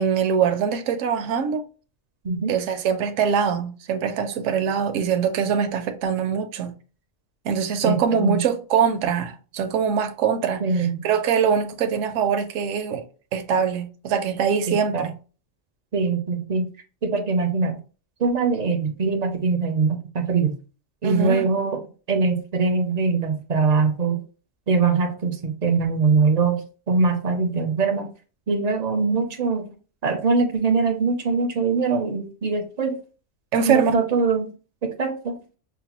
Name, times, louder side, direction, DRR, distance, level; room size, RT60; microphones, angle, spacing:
voice 1, 0.0-1.6 2.5-6.7 7.4-10.6 11.0-13.0 13.3-15.1 21.0-21.5 33.5-33.9, right 7 dB, 75° right, 0.9 m, -23 dB
voice 2, 2.2-2.6 7.8-8.4 10.6-11.0 14.7-15.1 15.9-16.7 17.0-17.8 18.2-20.6 21.0-21.8 22.1-24.2 24.7-28.1 28.5-29.7 30.0-33.0 33.7-34.5 34.8-35.4, right 4 dB, 50° right, 0.5 m, -22 dB
5.9 x 2.2 x 2.9 m
omnidirectional pair, 1.3 m